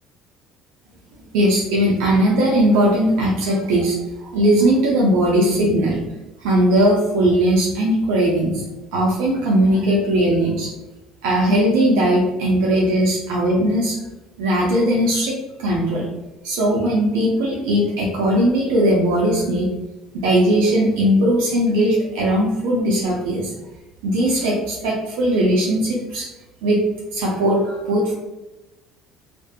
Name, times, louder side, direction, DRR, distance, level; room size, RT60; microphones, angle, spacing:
voice 1, 1.3-6.0 6.4-8.6 8.9-10.7 11.2-14.0 14.4-16.1 16.4-19.7 20.1-23.5 24.0-26.3 26.6-26.9 27.1-28.1, right 1 dB, 85° right, -3 dB, 0.5 m, -19 dB
2.5 x 2.2 x 2.4 m, 0.99 s
supercardioid pair, 105°, 0 cm